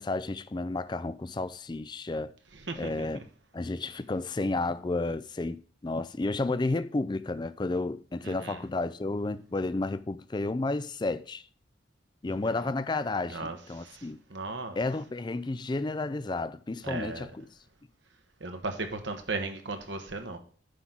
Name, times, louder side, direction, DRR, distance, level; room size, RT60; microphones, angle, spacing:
voice 1, 0.0-2.3 2.8-3.2 3.5-11.4 12.2-14.2 14.8-17.5, left 2 dB, 25° left, 0.4 m, -32 dB
voice 2, 2.7-3.1 8.2-8.6 13.3-13.6 13.8-14.0 14.3-14.8 16.8-17.3 18.4-20.4, right 3 dB, 65° right, 1.2 m, -36 dB
9.9 x 3.9 x 5.9 m
head